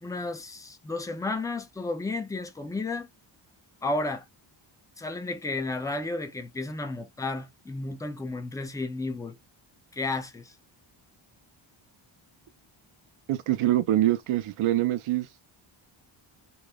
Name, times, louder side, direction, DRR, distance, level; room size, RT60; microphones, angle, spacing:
voice 1, 0.0-3.1 3.8-4.2 5.0-9.4 9.9-10.5, left 2 dB, 10° left, 0.3 m, -32 dB
voice 2, 13.3-15.3, right 14 dB, 85° right, 0.6 m, -24 dB
2.9 x 2.0 x 2.2 m
wide cardioid pair, 125°, 48 cm